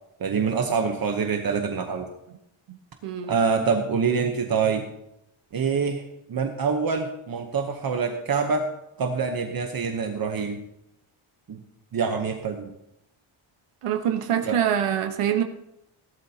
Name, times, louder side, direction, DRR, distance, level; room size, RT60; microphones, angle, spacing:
voice 1, 0.2-2.1 3.3-4.9 5.5-8.7 9.0-10.6 11.5-11.6 11.9-12.7 14.4-14.6, right 5 dB, 45° right, 4 dB, 1.0 m, -25 dB
voice 2, 3.0-3.4 13.8-15.4, right 9 dB, 85° right, 6 dB, 1.2 m, -25 dB
17.5 x 12.0 x 2.8 m, 0.83 s
wide cardioid pair, 160°, 50 cm